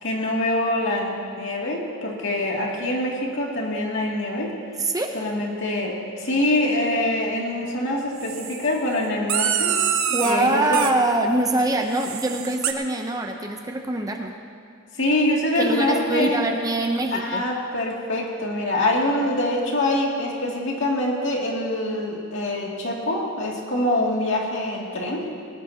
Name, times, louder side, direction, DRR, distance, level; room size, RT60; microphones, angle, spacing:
voice 1, 0.0-4.5 5.1-9.8 10.1-10.6 11.6-11.7 14.9-16.5 17.1-25.2, left 1 dB, 60° left, -2 dB, 2.5 m, -25 dB
voice 2, 4.8-5.1 10.1-14.3 15.6-17.4, right 2 dB, 15° right, 3 dB, 0.7 m, -24 dB
sound 1, 8.2-8.7 9.3-10.4 10.7-10.9 11.9-12.7, right 8 dB, 70° right, 1.0 m, -25 dB
20.0 x 19.5 x 2.9 m, 2.3 s
head